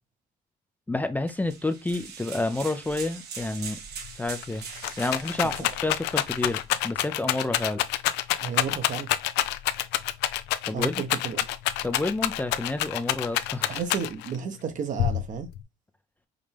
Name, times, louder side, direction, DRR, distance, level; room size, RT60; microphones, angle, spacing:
voice 1, 0.9-3.8 4.2-4.6 5.0-7.8 10.7-11.0 11.8-13.8, left 2 dB, 10° left, 0.4 m, -29 dB
sound 1, 1.3-6.7, right 6 dB, 75° right, 1.3 m, -42 dB
Rattle, 4.0-4.1 4.4-14.4 15.0-15.6, left 14 dB, 85° left, 0.5 m, -27 dB
voice 2, 8.4-9.1 10.7-11.5 13.6-15.5, right 6 dB, 50° right, 0.9 m, -32 dB
5.0 x 2.7 x 3.3 m
cardioid pair, 110°, 17 cm